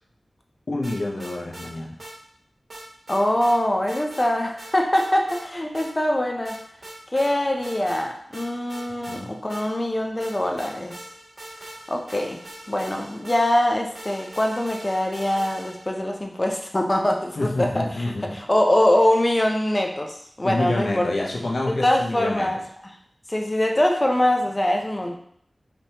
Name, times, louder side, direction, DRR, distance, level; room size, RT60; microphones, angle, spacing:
voice 1, 0.7-2.0 9.1-9.4 17.4-18.4 20.4-22.5, left 2 dB, 80° left, -2 dB, 0.8 m, -27 dB
sound 1, 0.8-1.7 2.0-2.1 2.7-3.6 3.9-4.3 4.6-5.4 5.7-5.9 6.4-7.3 7.6-8.0 8.3-9.9 10.2-16.0, right 1 dB, 55° right, 1.4 m, -41 dB
voice 2, 3.1-6.6 7.1-11.0 11.9-12.4 12.7-21.1 21.8-22.6 23.3-25.2, left 1 dB, 25° left, 2 dB, 0.7 m, -23 dB
5.1 x 3.0 x 2.9 m, 0.65 s
wide cardioid pair, 85°, 0 cm